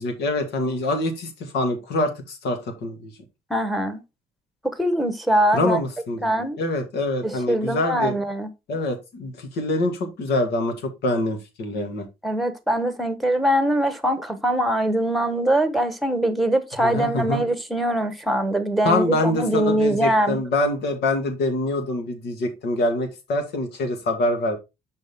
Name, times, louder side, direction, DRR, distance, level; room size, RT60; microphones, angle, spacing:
voice 1, 0.0-3.1 5.5-6.3 6.6-8.1 8.7-12.1 16.8-17.4 18.8-24.6, left 2 dB, 75° left, 2.2 m, -25 dB
voice 2, 3.5-4.0 4.6-5.8 6.2-6.6 7.2-8.5 12.2-20.4, right 1 dB, ahead, 1.1 m, -22 dB
6.3 x 5.4 x 3.6 m
cardioid pair, 110°, 17 cm